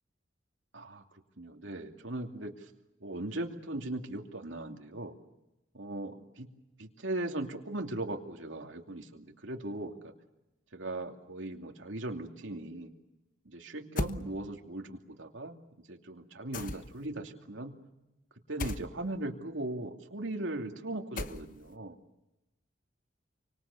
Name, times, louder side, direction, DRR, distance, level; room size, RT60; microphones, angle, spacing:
voice 1, 1.4-2.7 3.0-5.1 5.7-6.5 6.8-10.1 10.7-12.9 13.4-15.6 15.9-17.7 18.5-22.0, right 2 dB, 85° right, 3 dB, 2.6 m, -38 dB
sound 1, 14.0-14.2 16.5-17.1 18.6-18.9 21.2-21.7, left 2 dB, 45° left, 1.0 m, -35 dB
29.0 x 25.0 x 7.0 m, 0.95 s
head